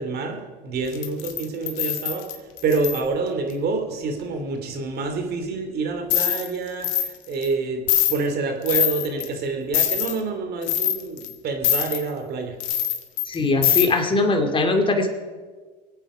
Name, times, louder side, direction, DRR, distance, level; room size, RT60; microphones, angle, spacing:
voice 1, 0.0-2.3 2.6-7.8 8.1-12.5, right 4 dB, 50° right, 5 dB, 2.9 m, -27 dB
sound 1, 0.9-3.0 6.1-6.5 6.8-7.1 7.4-7.5 7.9-8.2 8.7-9.3 9.7-10.2 10.6-11.3 11.6-12.0 12.6-13.3 13.6-13.8, left 11 dB, 65° left, 1.9 m, -23 dB
voice 2, 13.3-15.1, left 3 dB, 25° left, 4 dB, 2.6 m, -21 dB
25.0 x 8.8 x 5.0 m, 1.4 s
supercardioid pair, 100°, 21 cm